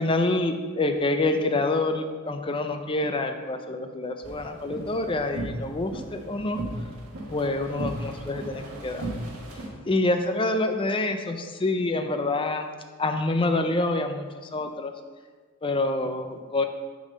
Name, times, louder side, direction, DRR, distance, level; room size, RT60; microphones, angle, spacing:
voice 1, 0.0-6.6 7.3-9.1 9.5-12.6 13.0-14.9 15.6-16.6, left 2 dB, 25° left, 7 dB, 0.5 m, -27 dB
sound 1, 4.2-9.7, right 1 dB, 75° right, 1.4 m, -36 dB
6.3 x 4.1 x 6.3 m, 1.5 s
head